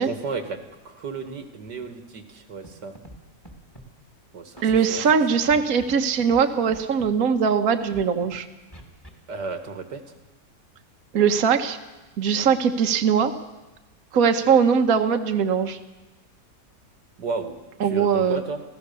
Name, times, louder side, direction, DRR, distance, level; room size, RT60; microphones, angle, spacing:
voice 1, 0.0-2.9 4.3-5.0 5.3-5.4 9.3-10.0 17.2-17.6 17.8-18.6, right 4 dB, 85° right, 7 dB, 2.4 m, -33 dB
Scratching (performance technique), 2.6-2.7 3.0-3.2 3.4-3.9 4.6-5.1 5.5-5.9 6.2-6.4 6.7-7.1 7.8-8.4 8.7-9.1, right 1 dB, 15° left, 2.9 m, -43 dB
voice 2, 4.6-8.4 11.1-11.8 12.2-13.3 14.1-15.8 17.8-18.4, right 6 dB, 60° right, 5 dB, 1.5 m, -21 dB
28.5 x 16.0 x 6.9 m, 1.1 s
omnidirectional pair, 1.8 m